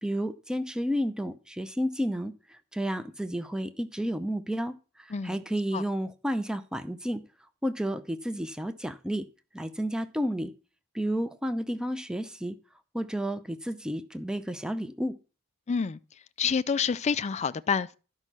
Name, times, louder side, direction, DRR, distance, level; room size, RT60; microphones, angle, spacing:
voice 1, 0.0-7.2 7.6-9.3 9.5-10.5 10.9-12.6 12.9-15.2, equal, 5° right, 0.6 m, -31 dB
voice 2, 15.7-16.0 16.4-17.9, left 6 dB, 30° left, 0.4 m, -28 dB
12.0 x 5.4 x 6.1 m
head